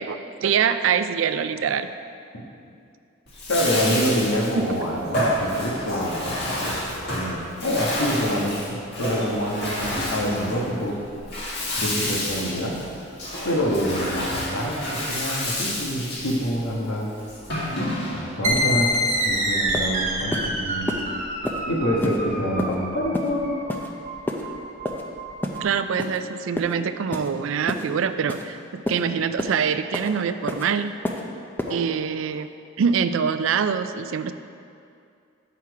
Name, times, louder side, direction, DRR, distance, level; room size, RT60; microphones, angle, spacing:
voice 1, 0.0-1.9 4.6-4.7 25.6-30.9 31.7-32.5 32.8-34.3, right 7 dB, 70° right, 11 dB, 0.4 m, -24 dB
Bathtub (filling or washing), 3.3-18.4, left 1 dB, 50° left, 1.8 m, -29 dB
voice 2, 3.5-8.6 9.0-11.0 11.8-12.8 13.4-17.1 18.1-18.9 19.2-21.0 21.7-23.5 31.7-31.8, equal, 85° left, -2 dB, 1.4 m, -26 dB
sound 1, 18.4-25.7, equal, 35° right, 1.1 m, -26 dB
sound 2, 19.2-19.3 19.7-19.9 20.3-20.5 20.9-21.0 21.4-21.6 22.0-22.2 22.6-22.7 23.1-23.3 23.7-23.9 24.3-24.4 24.8-25.0 25.4-25.6 26.0-26.2 26.6-26.7 27.1-27.3 27.7-27.8 28.3-28.4 28.9-29.0 29.4-29.5 29.9-30.1 30.5-30.6 31.0-31.2 31.6-31.7, left 1 dB, 10° left, 0.5 m, -28 dB
8.2 x 5.8 x 4.7 m, 2.5 s
head